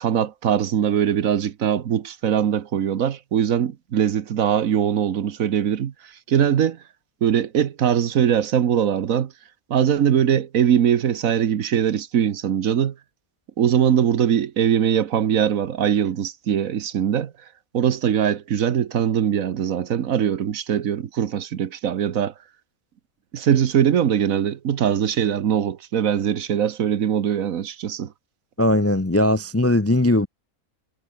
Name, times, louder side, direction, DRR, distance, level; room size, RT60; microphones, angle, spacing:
voice 1, 0.0-6.8 7.2-9.3 9.7-12.9 13.6-17.3 17.7-22.3 23.3-28.1, right 9 dB, 65° right, 1.4 m, -21 dB
voice 2, 28.6-30.3, left 1 dB, 15° left, 0.5 m, -19 dB
omnidirectional pair, 1.6 m